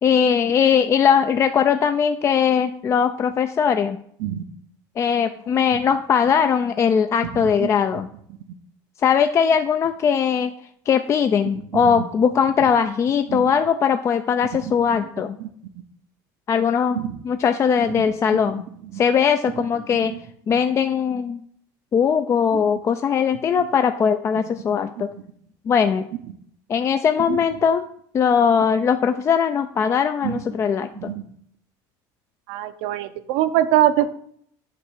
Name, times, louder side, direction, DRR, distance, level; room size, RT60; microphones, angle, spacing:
voice 1, 0.0-4.0 5.0-8.1 9.0-10.5 10.9-15.4 16.5-18.6 18.9-20.1 20.5-21.4 21.9-25.1 25.7-26.1 26.7-27.8 28.1-31.1, left 7 dB, 30° left, 8 dB, 0.4 m, -20 dB
voice 2, 7.3-7.7 11.7-12.0 13.3-13.4 14.6-14.7 15.4-15.5 16.9-17.2 18.3-18.4 18.9-19.0 19.9-20.2 22.5-22.6 23.5-23.7 27.3-27.6 30.2-30.4 30.9-31.3 32.5-34.1, right 12 dB, 75° right, 11 dB, 0.7 m, -24 dB
8.4 x 3.2 x 6.2 m, 0.64 s
supercardioid pair, 120°, 10 cm